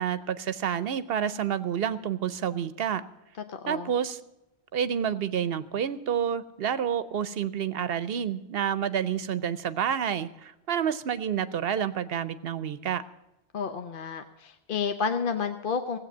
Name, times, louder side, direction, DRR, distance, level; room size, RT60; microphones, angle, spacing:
voice 1, 0.0-3.0 3.7-4.2 4.7-13.0, right 8 dB, 65° right, 15 dB, 0.8 m, -29 dB
voice 2, 3.6-3.9 13.5-16.0, left 6 dB, 55° left, 7 dB, 0.9 m, -30 dB
16.5 x 8.3 x 7.2 m, 0.96 s
omnidirectional pair, 1.1 m